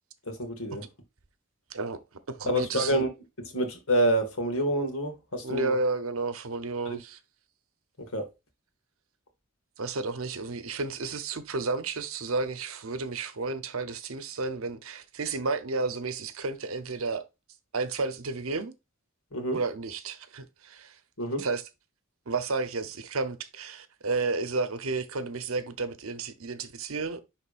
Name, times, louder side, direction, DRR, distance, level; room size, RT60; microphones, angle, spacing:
voice 1, 0.3-0.8 2.5-3.1 3.5-5.7 8.1-8.2 19.3-19.6 21.2-21.4, right 1 dB, 85° left, 1.9 m, -27 dB
voice 2, 1.7-2.0 2.3-3.1 5.4-7.2 9.8-17.2 17.7-18.7 19.5-21.0 21.4-21.6 22.3-27.2, right 3 dB, 75° right, 0.8 m, -32 dB
10.0 x 3.8 x 2.5 m
head